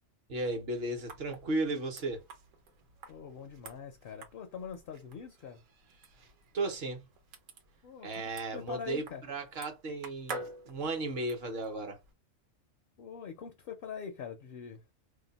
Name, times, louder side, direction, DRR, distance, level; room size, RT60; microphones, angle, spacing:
voice 1, 0.3-2.2 6.5-7.0 8.0-12.0, right 2 dB, 55° right, 1.1 m, -35 dB
sound 1, 1.1-12.1, right 3 dB, 85° right, 1.2 m, -50 dB
voice 2, 3.1-5.6 7.8-9.2 13.0-14.8, left 7 dB, 60° left, 0.6 m, -43 dB
2.7 x 2.1 x 3.9 m
omnidirectional pair, 1.3 m